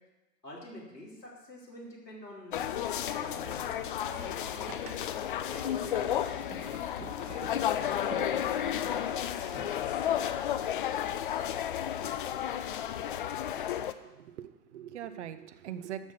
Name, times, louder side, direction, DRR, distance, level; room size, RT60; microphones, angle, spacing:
voice 1, 0.4-5.1 5.5-6.7 7.2-11.1, left 1 dB, 90° left, -4 dB, 3.6 m, -48 dB
sound 1, 2.5-13.9, left 10 dB, 35° left, 0.4 m, -32 dB
Boat Water vehicle, 4.4-9.7, right 6 dB, 65° right, 1.6 m, -49 dB
voice 2, 14.0-16.1, right 10 dB, 45° right, 11 dB, 0.8 m, -42 dB
12.5 x 6.3 x 6.9 m, 1.1 s
figure-of-eight pair, 100°, 48 cm